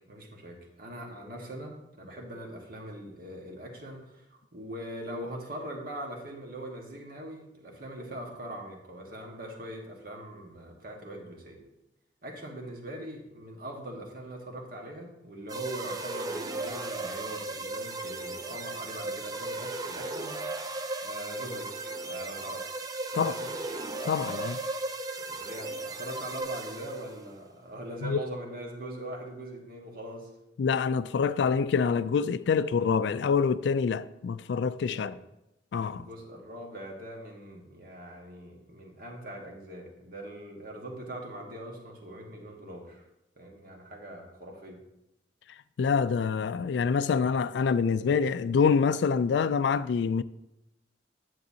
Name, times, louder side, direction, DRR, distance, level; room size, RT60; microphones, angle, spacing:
voice 1, 0.0-11.6 12.2-20.4 21.0-22.8 23.1-23.5 25.3-30.3 34.9-35.2 36.0-43.0 43.4-44.8, right 1 dB, 50° right, 1.5 m, -42 dB
sound 1, 15.5-27.3, right 2 dB, 20° right, 0.5 m, -36 dB
voice 2, 24.1-24.6 28.0-28.2 30.6-35.1 35.7-36.0 45.8-50.2, left 6 dB, 70° left, 0.3 m, -26 dB
9.3 x 7.8 x 2.8 m
head